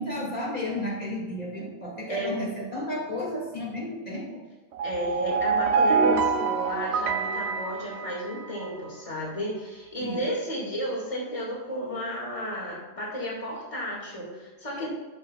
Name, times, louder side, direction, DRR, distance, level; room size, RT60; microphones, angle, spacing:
voice 1, 0.0-4.4 10.0-10.3 14.8-14.9, left 1 dB, 45° left, -4 dB, 2.5 m, -33 dB
voice 2, 2.1-2.5 4.8-14.9, equal, 30° left, -4 dB, 2.2 m, -33 dB
sound 1, 4.7-8.7, right 5 dB, 75° right, 0.9 m, -26 dB
12.5 x 5.8 x 2.4 m, 1.3 s
omnidirectional pair, 1.1 m